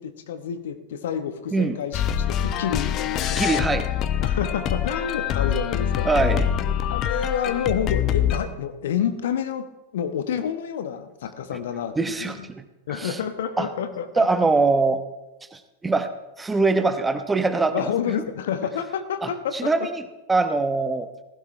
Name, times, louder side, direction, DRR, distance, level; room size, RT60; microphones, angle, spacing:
voice 1, 0.0-3.6 4.2-6.1 6.8-12.4 12.9-14.3 17.7-19.7, left 8 dB, 60° left, 9 dB, 1.2 m, -29 dB
sound 1, 1.9-8.4, left 9 dB, 35° left, 0.9 m, -25 dB
voice 2, 3.2-3.9 6.0-6.5 12.0-12.4 13.0-13.2 13.6-13.7 14.2-15.0 15.5-16.1 16.4-17.9 19.2-20.0 20.3-21.1, right 3 dB, 10° right, 9 dB, 1.0 m, -22 dB
19.0 x 16.0 x 3.3 m, 1.0 s
figure-of-eight pair, 90°, 0 cm